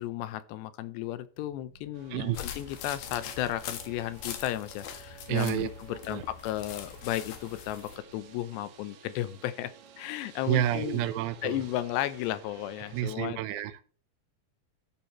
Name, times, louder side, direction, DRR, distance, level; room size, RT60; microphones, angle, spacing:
voice 1, 0.0-9.7 10.0-11.1 11.4-13.4, left 13 dB, 85° left, 2.9 m, -34 dB
sound 1, 1.3-8.3, right 4 dB, 45° left, 2.3 m, -59 dB
sound 2, 1.9-13.2, right 7 dB, 70° right, 2.9 m, -53 dB
sound 3, 2.3-8.0, left 9 dB, 70° left, 2.8 m, -42 dB
voice 2, 5.3-6.2 10.5-11.6 12.9-13.7, right 12 dB, 90° right, 3.0 m, -30 dB
13.5 x 8.6 x 3.1 m
omnidirectional pair, 4.8 m